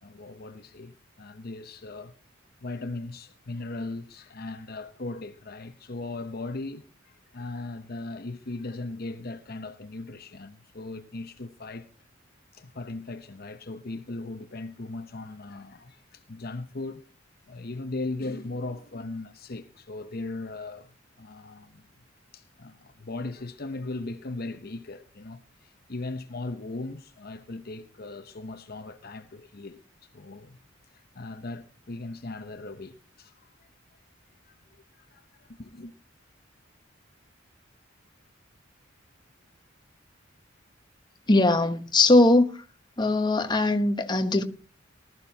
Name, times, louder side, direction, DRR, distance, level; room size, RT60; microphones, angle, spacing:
voice 1, 0.0-2.1 2.6-11.9 12.5-17.0 17.5-21.8 22.3-30.6 30.9-33.7 34.5-34.6 35.0-35.9, left 2 dB, 50° left, 0.8 m, -38 dB
voice 2, 41.3-42.6 43.0-44.4, left 2 dB, 20° left, 1.1 m, -20 dB
19.0 x 13.5 x 2.8 m
head